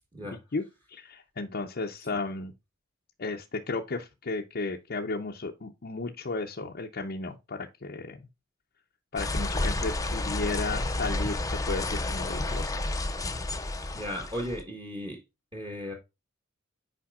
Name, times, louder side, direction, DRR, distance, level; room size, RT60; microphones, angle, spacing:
voice 1, 0.5-2.5 3.2-8.2 9.1-12.8, left 3 dB, 50° left, 0.7 m, -34 dB
sound 1, 9.2-14.6, left 2 dB, 15° left, 0.7 m, -31 dB
voice 2, 13.9-15.2 15.5-15.9, equal, 25° right, 1.6 m, -35 dB
8.6 x 5.1 x 2.4 m
head